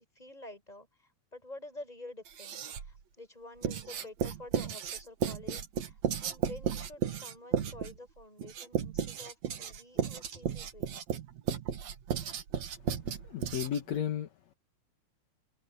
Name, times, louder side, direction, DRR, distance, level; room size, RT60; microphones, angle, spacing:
voice 1, 0.0-11.1, left 2 dB, 10° left, 6.3 m, -49 dB
Writing, 2.3-3.0 3.6-14.0, right 8 dB, 65° right, 2.9 m, -34 dB
voice 2, 12.8-14.3, left 9 dB, 65° left, 2.5 m, -35 dB
omnidirectional pair, 3.4 m